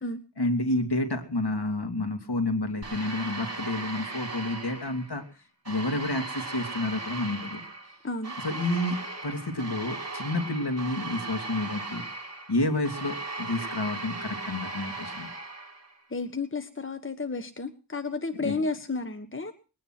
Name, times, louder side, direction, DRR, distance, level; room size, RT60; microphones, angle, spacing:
voice 1, 0.4-5.3 5.7-7.6 8.4-12.0 12.5-15.3 18.4-18.6, left 2 dB, 65° left, 6 dB, 2.9 m, -30 dB
sound 1, 2.8-5.2 5.6-16.0, right 3 dB, 35° right, 7.1 m, -37 dB
voice 2, 8.0-8.3 16.1-19.5, left 3 dB, 30° left, 9 dB, 1.4 m, -32 dB
21.0 x 9.8 x 6.0 m, 0.36 s
wide cardioid pair, 50°, 43 cm